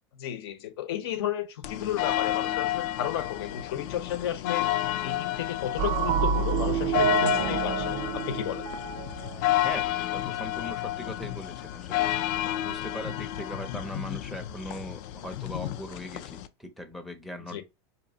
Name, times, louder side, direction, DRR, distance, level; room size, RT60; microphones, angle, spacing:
voice 1, 0.2-4.7 5.0-8.7 17.5-17.6, left 10 dB, 70° left, 0.8 m, -33 dB
sound 1, 1.6-16.5, left 14 dB, 50° left, 0.5 m, -31 dB
sound 2, 5.8-9.4, right 6 dB, 55° right, 0.5 m, -28 dB
voice 2, 9.6-17.6, equal, ahead, 0.5 m, -40 dB
4.3 x 2.9 x 2.7 m
supercardioid pair, 135°, 14 cm